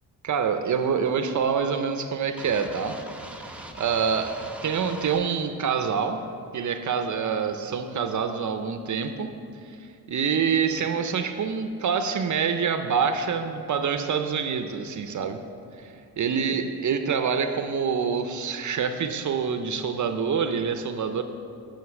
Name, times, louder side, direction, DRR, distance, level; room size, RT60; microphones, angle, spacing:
voice 1, 0.2-3.0 3.8-4.3 4.6-6.2 6.5-9.3 10.1-15.4 15.8-21.2, right 6 dB, 50° right, 8 dB, 0.6 m, -26 dB
sound 1, 2.4-5.2, right 1 dB, 5° right, 0.6 m, -41 dB
9.5 x 6.5 x 6.0 m, 2.4 s
wide cardioid pair, 130°, 38 cm